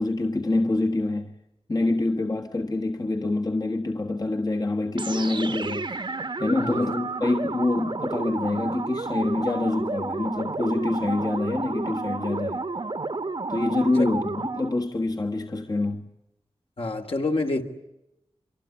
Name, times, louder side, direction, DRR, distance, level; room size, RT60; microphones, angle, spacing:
voice 1, 0.0-1.3 1.7-5.9 6.4-12.6 13.5-16.1, left 2 dB, 40° left, 1.4 m, -26 dB
sound 1, 5.0-14.8, right 3 dB, 50° right, 1.2 m, -31 dB
voice 2, 6.6-7.0 14.0-14.1 16.8-17.6, left 2 dB, 65° left, 2.6 m, -27 dB
24.5 x 24.0 x 8.8 m
wide cardioid pair, 55°, 10 cm